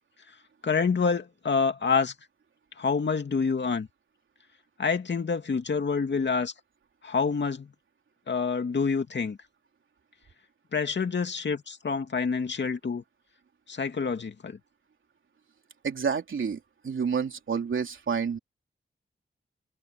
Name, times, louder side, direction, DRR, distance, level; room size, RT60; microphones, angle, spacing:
voice 1, 0.6-2.1 2.8-3.9 4.8-6.5 7.0-7.7 8.3-9.4 10.7-13.0 13.7-14.6, left 5 dB, 55° left, 2.6 m, -27 dB
voice 2, 15.8-16.6 16.8-18.4, right 6 dB, 70° right, 3.3 m, -29 dB
open air
cardioid pair, 75°, 21 cm